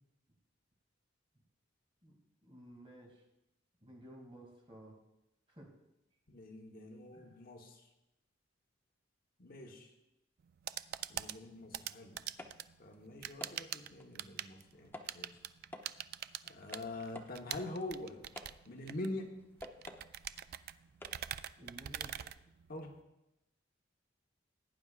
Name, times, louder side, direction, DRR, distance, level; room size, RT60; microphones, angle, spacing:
voice 1, 2.0-3.2 3.8-5.0 5.5-5.7 7.1-7.4 21.6-22.1, right 1 dB, 30° right, -1 dB, 2.5 m, -54 dB
voice 2, 6.3-7.8 9.4-9.9 11.1-12.2 12.8-15.4 16.5-18.2 18.6-19.3 22.7-22.9, left 2 dB, 50° left, 2 dB, 1.2 m, -45 dB
sound 1, 10.4-23.0, right 11 dB, 55° right, 0.3 m, -45 dB
sound 2, 12.3-21.6, left 2 dB, 10° left, 0.7 m, -55 dB
17.0 x 9.5 x 2.5 m, 0.90 s
head